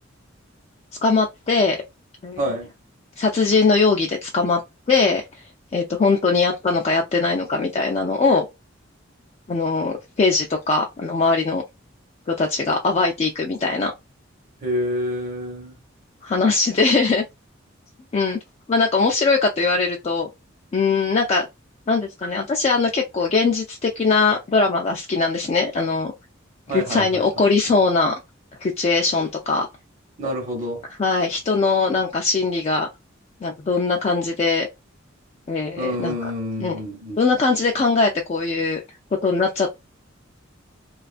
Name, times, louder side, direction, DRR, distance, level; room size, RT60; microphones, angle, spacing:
voice 1, 1.0-1.8 2.2-2.4 3.2-4.6 4.9-5.2 5.7-8.5 9.5-11.6 12.3-13.9 16.2-17.2 18.1-18.4 18.7-20.3 20.7-21.5 21.9-26.1 26.7-28.1 28.6-29.7 31.0-32.9 33.4-34.7 35.5-36.1 36.6-36.8 37.2-38.8 39.2-39.7, left 4 dB, 35° left, 0.4 m, -21 dB
voice 2, 2.4-2.7 14.6-15.8 26.7-27.3 27.7-27.8 30.2-30.8 35.8-37.2, equal, 40° right, 0.8 m, -27 dB
2.5 x 2.3 x 2.4 m
head